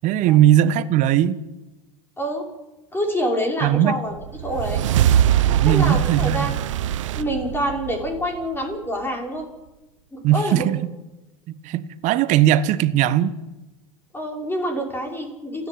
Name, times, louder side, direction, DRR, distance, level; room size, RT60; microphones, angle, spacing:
voice 1, 0.0-1.4 3.6-4.0 5.4-6.5 10.2-10.8 11.6-13.3, right 11 dB, 45° right, 1.4 m, -18 dB
voice 2, 2.2-2.5 2.9-4.8 5.6-6.6 7.1-9.5 10.1-10.7 14.1-15.7, equal, 15° left, 5.8 m, -27 dB
sound 1, 4.2-8.7, right 11 dB, 70° right, 1.0 m, -22 dB
29.5 x 10.5 x 8.8 m
hypercardioid pair, 90°, 17 cm